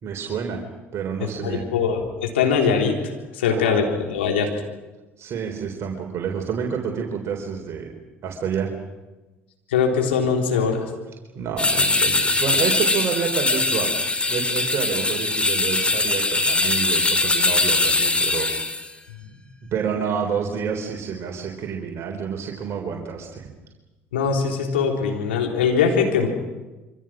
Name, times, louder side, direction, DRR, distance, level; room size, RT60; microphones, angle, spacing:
voice 1, 0.0-0.6 0.9-1.6 3.5-3.8 5.2-7.9 8.2-8.7 11.4-13.9 14.3-18.8 19.7-23.5, right 7 dB, 45° right, 1 dB, 3.8 m, -28 dB
voice 2, 1.4-2.9 3.3-4.5 9.7-10.8 24.1-26.3, left 6 dB, 80° left, 1 dB, 3.8 m, -21 dB
sound 1, 11.6-18.9, left 2 dB, 20° left, 2.9 m, -21 dB
27.0 x 25.0 x 6.3 m, 1.1 s
hypercardioid pair, 60°, 6 cm